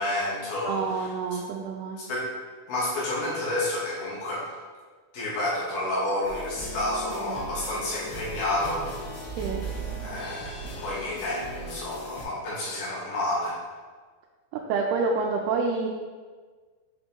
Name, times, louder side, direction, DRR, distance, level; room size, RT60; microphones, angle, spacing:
voice 1, 0.0-1.4 2.0-2.3 2.7-4.5 5.1-8.9 10.0-13.6, left 1 dB, 65° left, -7 dB, 2.7 m, -30 dB
voice 2, 0.6-2.0 7.1-7.4 9.3-9.7 14.7-15.9, right 4 dB, 85° right, 0 dB, 2.5 m, -28 dB
sound 1, 6.2-12.2, right 1 dB, 90° left, 3.4 m, -37 dB
7.0 x 3.9 x 3.7 m, 1.5 s
omnidirectional pair, 4.5 m